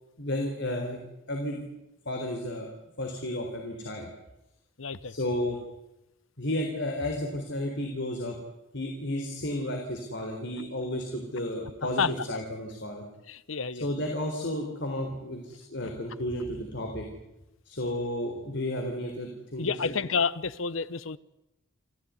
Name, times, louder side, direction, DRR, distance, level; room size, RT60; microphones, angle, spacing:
voice 1, 0.2-1.0 1.3-1.6 2.1-2.7 3.0-4.1 5.0-5.6 6.4-8.4 8.7-13.1 13.8-17.1 17.7-19.9, left 1 dB, 60° left, 2 dB, 4.0 m, -32 dB
voice 2, 4.8-5.1 12.0-12.1 13.3-13.9 19.6-21.2, left 5 dB, 80° left, 17 dB, 1.0 m, -29 dB
27.5 x 16.0 x 9.5 m, 0.92 s
head